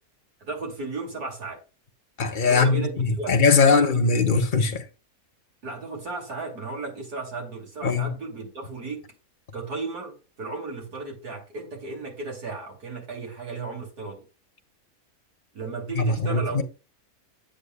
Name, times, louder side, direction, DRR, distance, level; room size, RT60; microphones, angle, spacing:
voice 1, 0.4-1.6 2.5-3.4 3.7-4.1 5.6-9.0 9.5-14.2 15.5-16.6, right 3 dB, 80° right, 3.0 m, -35 dB
voice 2, 2.2-4.8 7.8-8.1 15.9-16.6, left 4 dB, 40° left, 0.9 m, -21 dB
8.4 x 8.3 x 2.2 m
omnidirectional pair, 1.6 m